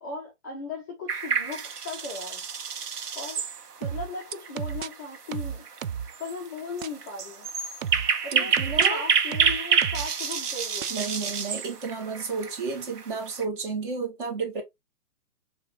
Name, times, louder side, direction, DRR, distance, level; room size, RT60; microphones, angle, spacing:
voice 1, 0.0-2.4 3.1-3.4 3.8-5.7 6.2-7.5 8.2-8.6 8.9-11.4, left 3 dB, 15° left, 0.6 m, -37 dB
sound 1, 1.1-13.4, right 6 dB, 85° right, 1.3 m, -29 dB
sound 2, 3.8-4.9 5.3-6.1 6.8-6.9 7.8-8.9 9.3-10.3 10.8-10.9, right 8 dB, 60° right, 0.5 m, -32 dB
voice 2, 8.3-9.0 10.9-14.6, right 4 dB, 35° right, 2.0 m, -32 dB
6.4 x 3.0 x 2.8 m
hypercardioid pair, 165°, 45 cm